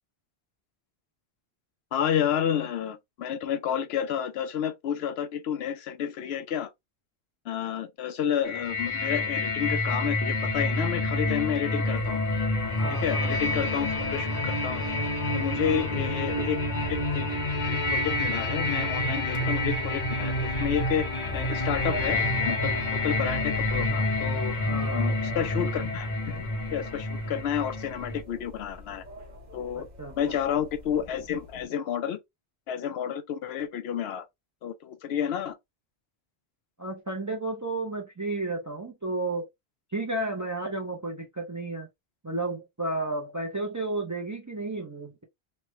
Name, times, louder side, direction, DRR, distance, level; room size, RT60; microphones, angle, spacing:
voice 1, 1.9-6.7 7.5-12.2 12.9-14.9 15.3-16.6 16.9-17.3 17.9-21.1 21.3-24.5 24.9-26.4 26.7-29.0 29.5-29.9 30.2-32.2 32.7-34.2 34.6-35.6, left 9 dB, 80° left, 0.8 m, -30 dB
sound 1, 8.4-28.2, left 2 dB, 45° left, 0.8 m, -28 dB
sound 2, 12.6-31.6, left 2 dB, 45° right, 1.1 m, -41 dB
voice 2, 12.8-13.6 15.6-15.9 24.6-25.0 29.7-30.4 36.8-39.5 39.9-41.9 42.2-45.2, right 2 dB, 25° right, 0.4 m, -33 dB
3.2 x 2.1 x 3.0 m
omnidirectional pair, 1.1 m